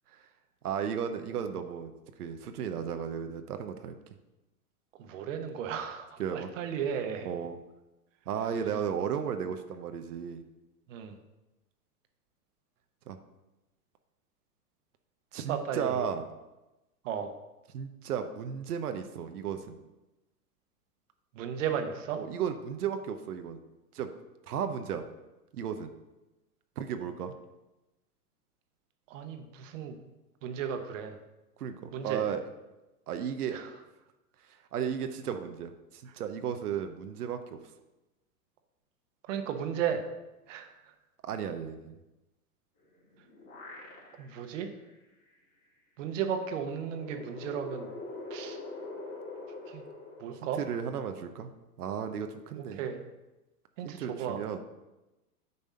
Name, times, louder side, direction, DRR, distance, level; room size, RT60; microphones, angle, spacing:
voice 1, 0.6-1.9 2.2-4.0 6.2-6.5 7.2-7.6 8.3-10.4 13.1-13.2 15.3-16.3 17.7-19.8 22.2-23.6 23.9-24.1 24.5-25.0 25.5-25.9 26.8-27.3 31.6-32.4 33.1-33.6 34.5-37.6 41.2-41.9 50.5-51.5 51.8-52.9 53.8-54.6, right 8 dB, 75° right, 7 dB, 0.9 m, -34 dB
voice 2, 5.0-6.1 6.3-7.3 10.9-11.1 15.5-16.1 17.0-17.3 21.3-22.2 29.1-30.0 30.4-31.1 31.9-32.2 33.5-33.7 39.3-40.0 40.5-40.7 44.2-44.7 46.0-47.9 48.3-48.6 49.7-49.8 50.2-50.6 52.8-53.0 53.8-54.4, right 8 dB, 55° right, 6 dB, 1.2 m, -34 dB
sound 1, 42.8-44.5 44.9-45.0 46.3-51.1, left 2 dB, 35° left, 2.8 m, -44 dB
9.4 x 3.5 x 5.6 m, 1.0 s
hypercardioid pair, 120°, 46 cm